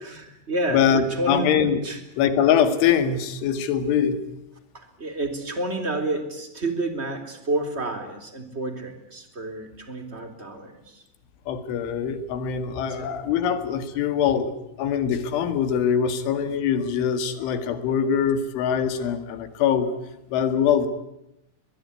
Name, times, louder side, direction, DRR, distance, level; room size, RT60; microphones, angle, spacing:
voice 1, 0.0-1.5 1.8-2.0 4.7-11.0 12.9-13.1, right 2 dB, 15° right, 7 dB, 3.2 m, -30 dB
voice 2, 0.7-1.8 2.2-4.2 11.5-20.0 20.3-20.9, left 8 dB, 75° left, 10 dB, 4.4 m, -23 dB
23.0 x 21.5 x 9.7 m, 0.86 s
omnidirectional pair, 5.6 m